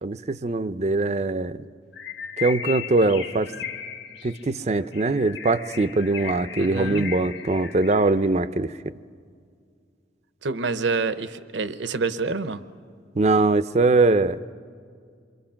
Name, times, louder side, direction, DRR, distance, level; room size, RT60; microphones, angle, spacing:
voice 1, 0.0-1.6 2.4-3.5 4.2-8.9 13.2-14.4, right 3 dB, 35° right, 14 dB, 0.5 m, -22 dB
Bird, 1.9-8.2, left 7 dB, 75° left, 1.2 m, -36 dB
voice 2, 6.6-7.0 10.4-12.6, right 4 dB, 80° right, 12 dB, 0.8 m, -27 dB
28.0 x 24.0 x 5.8 m, 2.2 s
head